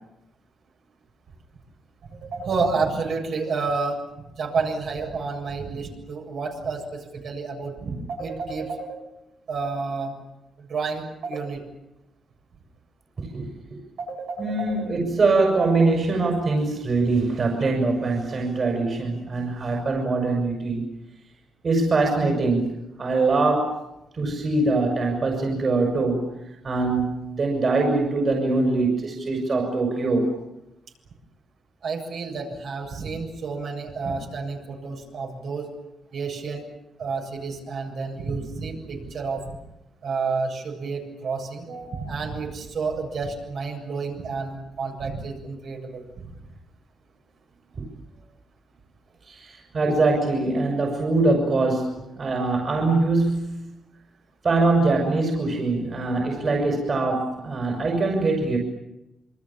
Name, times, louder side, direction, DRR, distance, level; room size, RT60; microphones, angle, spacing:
voice 1, 2.1-4.0 4.4-9.0 9.5-10.1 10.6-11.6 14.0-14.9 31.8-35.7 36.1-36.6 37.0-39.5 40.0-46.0, right 4 dB, 65° right, 1 dB, 7.5 m, -30 dB
voice 2, 13.2-13.5 14.4-20.8 21.6-22.7 23.0-23.8 24.1-26.3 26.6-30.3 47.8-47.9 49.3-53.6 54.4-58.6, right 3 dB, 45° right, 2 dB, 6.2 m, -23 dB
27.5 x 24.0 x 7.4 m, 0.92 s
cardioid pair, 105°, 0 cm